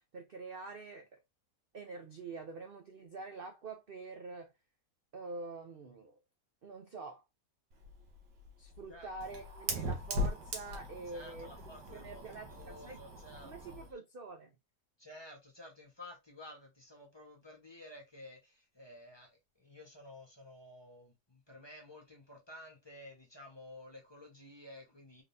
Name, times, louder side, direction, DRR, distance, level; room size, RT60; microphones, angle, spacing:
voice 1, 0.1-1.2 1.7-4.5 5.1-6.2 6.6-7.2 8.6-11.5 11.9-13.0 13.4-14.5, right 3 dB, 55° right, 0.6 m, -46 dB
Fire, 7.7-13.9, equal, 85° right, 1.6 m, -40 dB
voice 2, 11.1-13.9 15.0-25.2, left 1 dB, 20° left, 1.0 m, -53 dB
3.9 x 3.7 x 2.6 m
omnidirectional pair, 1.8 m